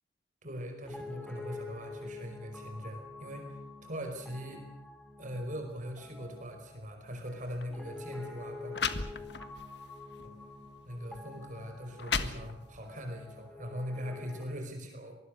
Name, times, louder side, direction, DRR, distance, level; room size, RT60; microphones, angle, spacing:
voice 1, 0.4-4.7 5.2-8.9 10.2-10.3 10.8-15.2, equal, 40° right, 4 dB, 5.2 m, -41 dB
Piano, 0.8-14.5, left 3 dB, 5° left, 3.6 m, -47 dB
sound 1, 7.5-7.7 8.4-8.5 8.7-9.6 10.2-10.4 11.1-11.2 11.7-12.9, left 5 dB, 60° left, 1.6 m, -34 dB
26.0 x 20.5 x 6.6 m, 0.79 s
head